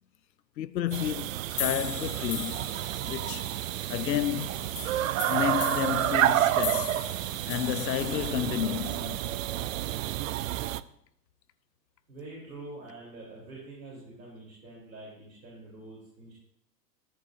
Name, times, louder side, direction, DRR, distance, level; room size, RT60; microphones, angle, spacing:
voice 1, 0.6-1.3 1.6-2.7 3.0-3.5 3.9-4.7 5.3-7.0 7.5-9.3, left 11 dB, 85° left, 0.6 m, -31 dB
sound 1, 0.9-10.8, right 13 dB, 55° right, 0.5 m, -30 dB
sound 2, 1.5-8.3, left 7 dB, 30° left, 2.4 m, -39 dB
voice 2, 12.1-16.3, right 2 dB, 80° right, 3.9 m, -45 dB
13.5 x 10.0 x 2.7 m
hypercardioid pair, 105°, 50 cm